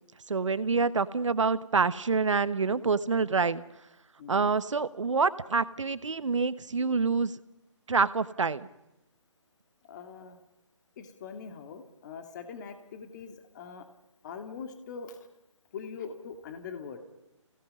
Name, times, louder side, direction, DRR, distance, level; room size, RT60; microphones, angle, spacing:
voice 1, 0.3-3.6 4.3-7.3 7.9-8.7, right 4 dB, 70° right, 15 dB, 1.2 m, -27 dB
voice 2, 4.2-4.5 9.9-10.4 11.0-13.8 14.2-15.2 15.7-17.0, left 6 dB, 35° left, 7 dB, 2.4 m, -42 dB
29.0 x 17.5 x 5.4 m, 0.91 s
figure-of-eight pair, 145°, 16 cm